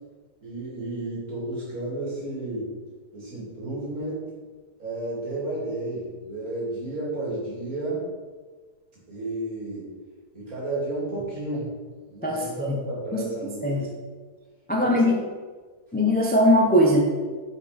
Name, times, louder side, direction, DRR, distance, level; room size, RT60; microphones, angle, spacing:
voice 1, 0.4-2.7 3.1-4.2 4.8-8.0 9.1-9.9 10.3-11.7 12.1-13.9 14.8-15.2, right 2 dB, 60° right, -6 dB, 2.6 m, -32 dB
voice 2, 14.7-15.1 15.9-17.1, left 1 dB, 15° left, -1 dB, 0.4 m, -19 dB
5.6 x 4.8 x 5.0 m, 1.4 s
omnidirectional pair, 1.7 m